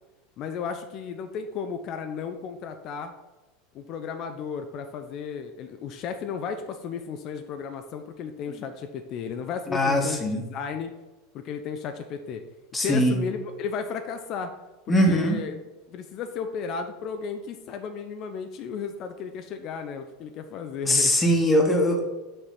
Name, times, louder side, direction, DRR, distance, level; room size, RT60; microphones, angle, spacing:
voice 1, 0.4-3.1 3.7-10.9 11.3-12.4 12.8-14.5 14.9-15.6 15.9-21.1, left 6 dB, 45° left, 7 dB, 0.5 m, -34 dB
voice 2, 9.7-10.4 12.7-13.2 14.9-15.4 20.9-22.0, equal, 15° left, 1 dB, 1.2 m, -21 dB
6.0 x 3.1 x 5.7 m, 1.1 s
figure-of-eight pair, 80°, 0 cm